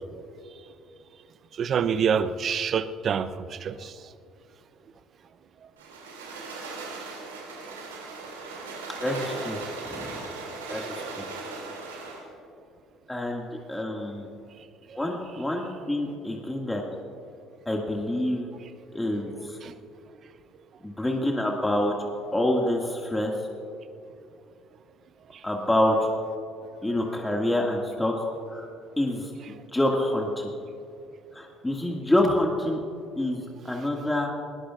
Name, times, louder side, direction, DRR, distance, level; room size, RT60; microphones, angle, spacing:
voice 1, 1.6-3.9 19.6-19.7, right 7 dB, 50° right, 14 dB, 0.7 m, -26 dB
sound 1, 5.8-12.3, right 3 dB, 90° right, 2.7 m, -38 dB
voice 2, 9.0-10.2 10.7-11.2 13.1-14.3 14.9-16.8 17.7-18.5 18.9-19.6 20.8-21.9 22.3-23.3 25.4-26.1 26.8-28.1 28.5-28.7 29.0-30.5 31.3-32.8 33.2-34.3, left 1 dB, 10° left, -1 dB, 2.1 m, -27 dB
20.5 x 20.0 x 2.5 m, 2.7 s
hypercardioid pair, 60°, 0 cm